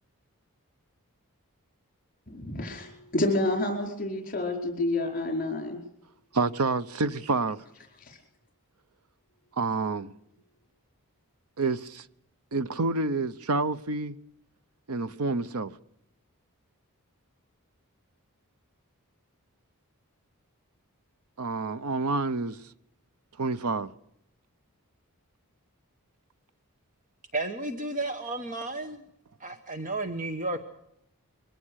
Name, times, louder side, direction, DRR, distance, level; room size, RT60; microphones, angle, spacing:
voice 1, 2.3-5.8 8.0-8.2, left 2 dB, 40° left, 5.0 m, -29 dB
voice 2, 6.3-7.6 9.6-10.1 11.6-12.1 12.5-14.2 14.9-15.8 21.4-22.6 23.4-23.9, right 3 dB, 80° right, 0.9 m, -28 dB
voice 3, 27.3-29.0 29.4-30.6, right 2 dB, 35° right, 1.3 m, -32 dB
23.0 x 17.5 x 6.5 m
head